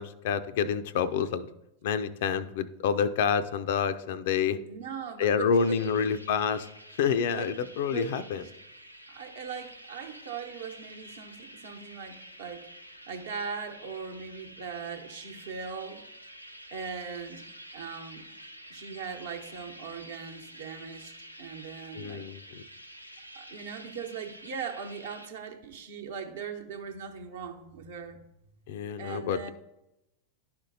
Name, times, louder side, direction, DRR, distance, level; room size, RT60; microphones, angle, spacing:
voice 1, 0.0-1.5 1.8-4.6 5.2-6.7 7.0-8.4 22.0-22.6 28.7-29.5, left 6 dB, 55° left, 0.4 m, -28 dB
voice 2, 4.6-6.0 7.3-8.1 8.4-8.5 9.1-12.7 13.1-16.0 16.7-17.5 17.7-18.2 18.7-22.2 23.3-28.2 29.0-29.5, right 6 dB, 60° right, 1.0 m, -40 dB
sound 1, 5.5-25.3, equal, 90° right, 0.5 m, -49 dB
11.5 x 4.3 x 2.7 m
figure-of-eight pair, 90°, 0 cm